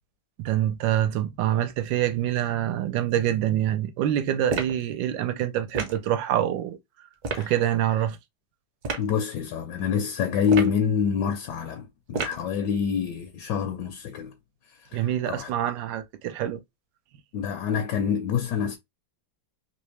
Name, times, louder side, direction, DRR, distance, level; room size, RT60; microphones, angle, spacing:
voice 1, 0.4-6.8 7.4-8.2 14.9-16.6, right 11 dB, 75° right, 1.2 m, -26 dB
sound 1, 4.5-4.8 5.7-6.0 7.2-7.5 8.8-9.1 10.4-10.8 12.1-12.5, right 4 dB, 55° right, 1.1 m, -30 dB
voice 2, 9.0-14.3 14.9-15.5 17.3-18.8, left 7 dB, 75° left, 1.1 m, -26 dB
3.4 x 2.8 x 3.1 m
omnidirectional pair, 2.1 m